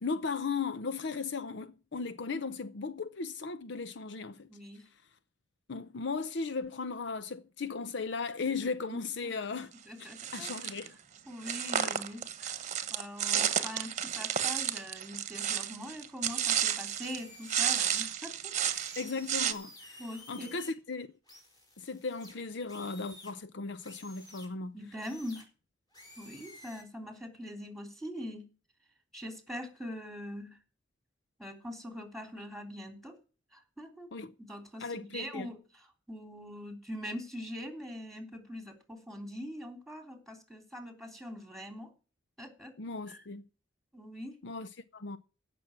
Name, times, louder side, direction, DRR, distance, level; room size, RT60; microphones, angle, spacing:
voice 1, 0.0-4.5 5.7-9.7 10.3-11.0 11.8-11.9 19.0-20.0 20.3-21.1 21.8-24.8 34.1-34.3 34.8-35.5 42.8-43.4 44.4-45.2, left 4 dB, 65° left, 0.7 m, -36 dB
voice 2, 4.5-4.9 8.9-9.3 9.9-10.5 11.3-18.5 20.0-20.5 24.7-25.4 26.2-28.4 29.1-30.6 31.4-33.2 33.5-34.1 34.4-35.6 36.1-41.9 42.4-42.7 43.1-43.2 43.9-44.4, equal, ahead, 3.4 m, -43 dB
sound 1, 10.1-10.9 11.4-17.2 17.5-19.5, right 9 dB, 40° right, 1.1 m, -32 dB
sound 2, 17.0-18.0 18.7-20.7 21.3-23.3 23.8-24.5 25.0-25.4 25.9-26.8, left 2 dB, 20° left, 4.8 m, -52 dB
16.0 x 6.2 x 7.4 m
head